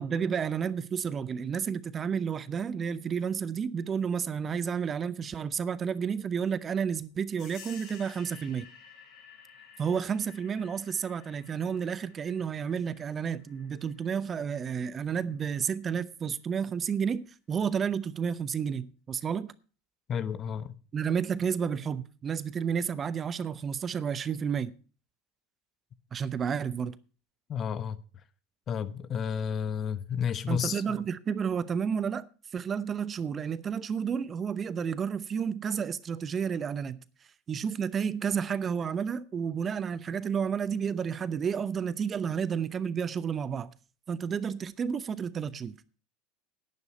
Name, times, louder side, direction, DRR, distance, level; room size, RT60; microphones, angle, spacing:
voice 1, 0.0-8.7 9.8-19.5 20.9-24.7 26.1-27.0 30.5-32.2 32.5-37.0 37.5-43.7 44.1-45.7, right 7 dB, 30° right, 0.7 m, -31 dB
sound 1, 7.4-15.7, left 7 dB, 55° left, 5.2 m, -53 dB
voice 2, 20.1-20.7 27.5-28.0 28.7-31.0, left 7 dB, 40° left, 0.9 m, -31 dB
11.0 x 9.8 x 5.2 m
hypercardioid pair, 85°, 0 cm